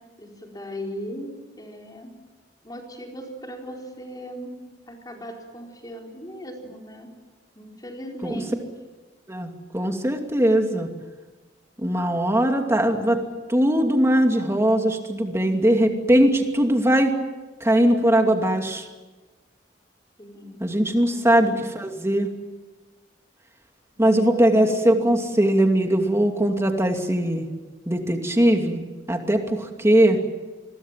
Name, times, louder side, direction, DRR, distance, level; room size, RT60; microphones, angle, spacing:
voice 1, 0.2-2.1 2.6-4.6 4.9-7.1 7.6-8.6 20.2-20.7 21.0-21.4 21.7-21.8 24.0-25.0, equal, 20° left, 1 dB, 4.6 m, -38 dB
voice 2, 9.3-10.9 11.8-13.2 13.5-17.1 17.6-18.8 20.6-22.3 24.0-27.5 27.9-28.8 29.1-30.2, right 1 dB, 15° right, 4 dB, 2.6 m, -20 dB
26.5 x 22.0 x 7.6 m, 1.2 s
head